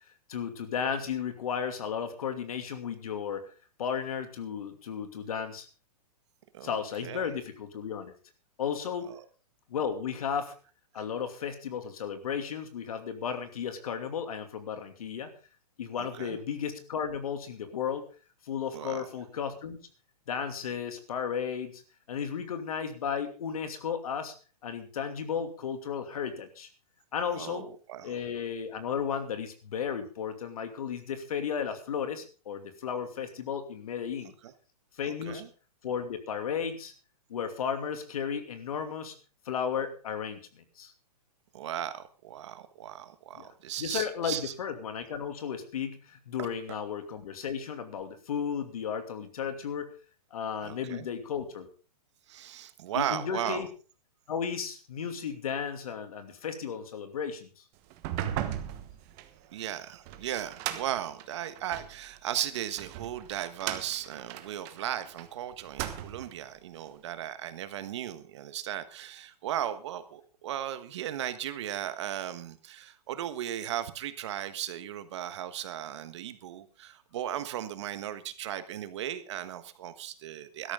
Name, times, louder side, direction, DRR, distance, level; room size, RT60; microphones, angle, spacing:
voice 1, 0.3-3.5 3.8-5.7 6.6-8.1 8.6-9.1 9.7-10.6 10.9-15.3 15.8-18.1 18.4-19.8 20.3-21.8 22.1-24.3 24.6-26.7 27.1-27.7 28.0-34.3 35.0-35.5 35.8-36.9 37.3-39.1 39.5-40.9 43.3-43.5 43.8-49.9 50.3-51.7 52.9-53.7 54.3-57.6, left 7 dB, 65° left, 8 dB, 2.7 m, -34 dB
voice 2, 6.5-7.3 9.1-9.2 16.0-16.4 18.7-19.1 27.3-28.2 34.4-34.5 35.1-35.5 41.5-44.5 46.4-46.5 50.6-51.1 52.3-53.6 59.5-80.7, right 11 dB, 45° right, 11 dB, 1.4 m, -36 dB
sound 1, 57.9-62.0 62.5-65.3 65.6-66.4, right 11 dB, 25° right, 1.2 m, -37 dB
16.5 x 13.0 x 3.8 m, 0.35 s
hypercardioid pair, 165°, 20 cm